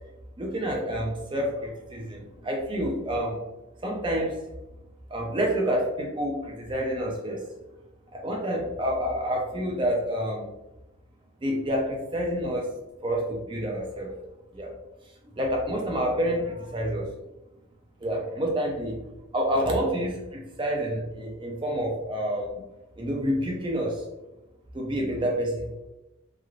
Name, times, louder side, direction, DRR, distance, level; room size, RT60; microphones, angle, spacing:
voice 1, 0.4-3.4 3.8-4.4 5.1-7.5 8.1-10.5 11.4-14.1 14.5-14.7 15.0-17.1 18.0-19.1 19.3-22.6 23.0-24.1 24.7-25.7, equal, 25° right, 0 dB, 0.5 m, -28 dB
3.0 x 2.4 x 2.4 m, 0.98 s
head